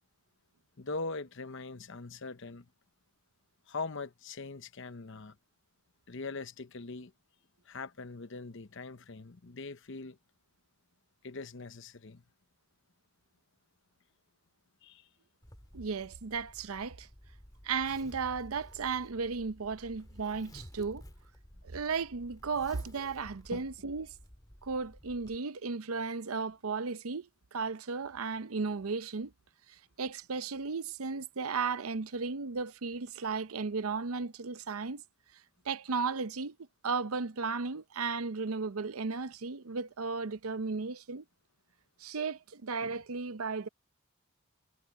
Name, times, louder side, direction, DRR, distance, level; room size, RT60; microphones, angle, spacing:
voice 1, 0.8-2.7 3.7-5.4 6.1-7.1 7.7-10.2 11.2-12.2 14.8-15.1 23.5-23.6, left 3 dB, 60° left, 0.9 m, -41 dB
Zipper (clothing), 15.4-25.4, equal, 20° left, 3.3 m, -53 dB
voice 2, 15.7-17.1 17.6-21.0 21.6-24.1 24.6-29.3 29.7-35.0 35.6-36.6 36.8-41.2 42.0-43.7, right 4 dB, 85° right, 0.7 m, -35 dB
head